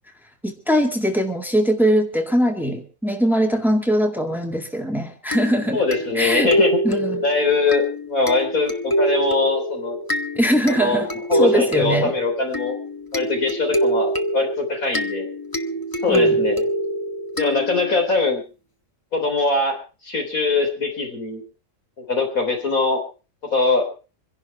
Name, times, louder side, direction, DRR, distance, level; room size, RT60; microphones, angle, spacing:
voice 1, 0.4-5.8 6.2-6.5 6.8-7.2 10.4-11.1 11.4-12.1 16.1-16.4, equal, ahead, 2.0 m, -21 dB
sound 1, 5.3-18.1, right 1 dB, 20° left, 0.9 m, -25 dB
voice 2, 5.7-6.8 7.2-10.0 10.7-11.0 11.3-12.8 13.1-15.3 16.0-16.7 17.4-18.4 19.1-19.8 20.0-21.4 22.0-23.0 23.5-23.9, left 3 dB, 90° left, 4.3 m, -22 dB
25.5 x 11.0 x 4.5 m
omnidirectional pair, 1.4 m